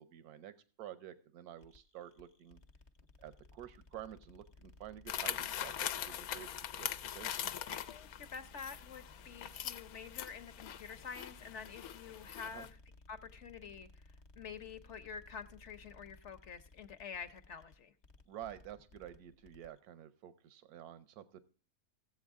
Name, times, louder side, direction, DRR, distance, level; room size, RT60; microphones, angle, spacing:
voice 1, 0.0-2.6 3.2-7.5 12.4-12.7 18.3-21.4, right 11 dB, 90° right, 14 dB, 1.3 m, -50 dB
sound 1, 1.6-19.8, left 2 dB, 40° left, 0.7 m, -60 dB
sound 2, 5.1-12.7, left 10 dB, 80° left, 1.1 m, -42 dB
voice 2, 7.7-12.7 13.1-13.9 14.4-17.9, left 6 dB, 55° left, 9 dB, 1.1 m, -48 dB
16.0 x 7.8 x 3.6 m, 0.38 s
omnidirectional pair, 1.5 m